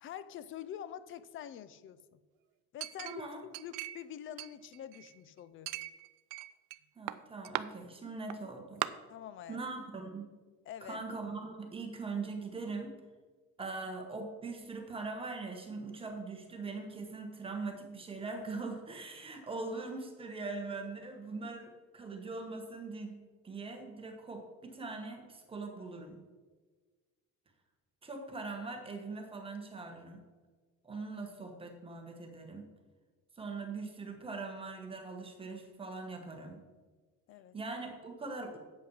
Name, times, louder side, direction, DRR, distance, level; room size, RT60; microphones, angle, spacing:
voice 1, 0.0-2.2 2.7-5.7 9.1-9.6 10.7-11.0 37.3-37.6, left 10 dB, 40° left, 15 dB, 0.4 m, -46 dB
Chink clink, 2.8-4.1 4.4-5.2 5.7-6.8 7.1-7.6 8.3-8.4 8.8-8.9, right 17 dB, 80° right, 0.5 m, -39 dB
voice 2, 3.0-3.4 7.0-8.8 9.5-10.3 10.8-12.9 13.6-26.2 28.0-30.2 30.8-32.7 33.4-36.6 37.5-38.6, right 3 dB, 15° right, 3 dB, 1.1 m, -41 dB
8.4 x 5.8 x 6.3 m, 1.4 s
cardioid pair, 165°, 33 cm